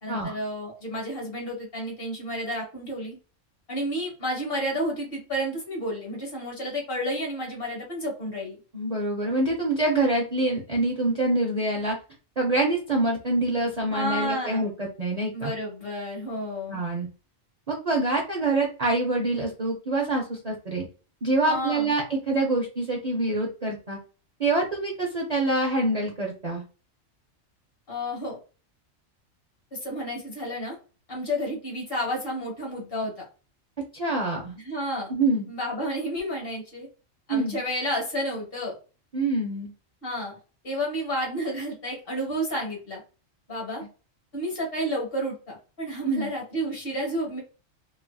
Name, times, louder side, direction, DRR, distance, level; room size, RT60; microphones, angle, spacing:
voice 1, 0.0-3.2 3.7-8.6 13.9-14.7 15.3-16.8 21.5-21.9 27.9-28.4 29.7-30.8 31.1-33.1 34.6-35.1 35.5-36.9 37.3-38.7 40.0-40.3 40.6-43.0 43.5-43.8 44.3-47.4, equal, 50° left, -2 dB, 1.3 m, -31 dB
voice 2, 8.7-12.0 12.4-15.5 16.7-17.1 17.7-20.9 21.2-24.0 24.4-26.6 33.9-34.6 35.1-35.5 37.3-37.6 39.1-39.7 46.0-46.3, right 2 dB, 45° right, -2 dB, 0.6 m, -26 dB
3.1 x 2.5 x 2.2 m, 0.35 s
omnidirectional pair, 1.3 m